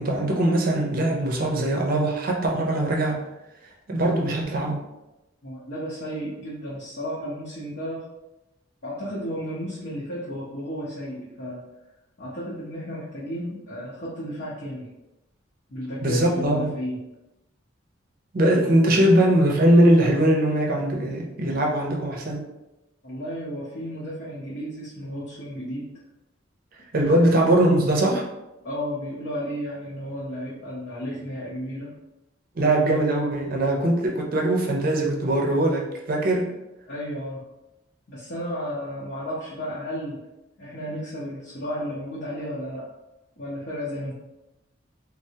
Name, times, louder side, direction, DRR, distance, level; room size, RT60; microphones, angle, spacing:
voice 1, 0.0-3.2 3.9-4.8 16.0-16.7 18.3-22.4 26.9-28.2 32.6-36.5, right 1 dB, 50° right, 0 dB, 0.5 m, -21 dB
voice 2, 5.4-8.0 8.8-11.6 12.2-14.9 15.7-17.0 23.0-26.0 27.0-27.4 28.6-31.9 36.9-37.4 38.1-40.3 40.6-42.9 43.4-44.1, equal, 60° left, -10 dB, 0.7 m, -33 dB
3.2 x 2.0 x 2.7 m, 0.96 s
head